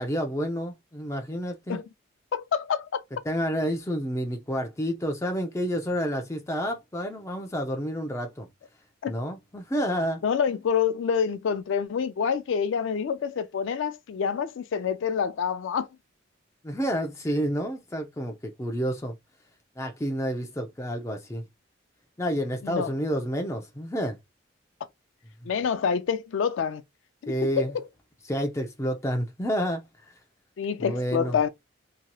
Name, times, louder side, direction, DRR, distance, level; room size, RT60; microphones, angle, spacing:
voice 1, 0.0-1.8 3.2-8.5 9.1-10.2 16.6-19.2 19.8-21.5 22.2-24.2 27.3-27.8 28.3-29.9 30.8-31.4, equal, 15° left, 0.5 m, -29 dB
voice 2, 2.3-3.0 9.0-9.1 10.2-15.9 22.6-22.9 25.5-26.8 27.2-27.7 30.6-31.5, left 7 dB, 75° left, 0.3 m, -27 dB
2.9 x 2.8 x 2.2 m
head